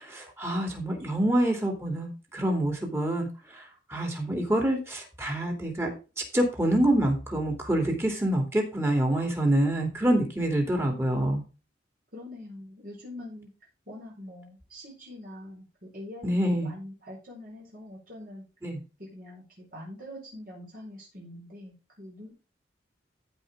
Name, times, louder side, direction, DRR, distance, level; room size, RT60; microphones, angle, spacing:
voice 1, 0.0-11.4 16.2-16.7 18.6-18.8, right 1 dB, 15° right, 2 dB, 2.9 m, -26 dB
voice 2, 10.7-11.0 12.1-13.5 13.9-18.4 19.0-22.3, left 1 dB, 50° right, -4 dB, 4.6 m, -44 dB
15.0 x 5.2 x 3.7 m, 0.30 s
head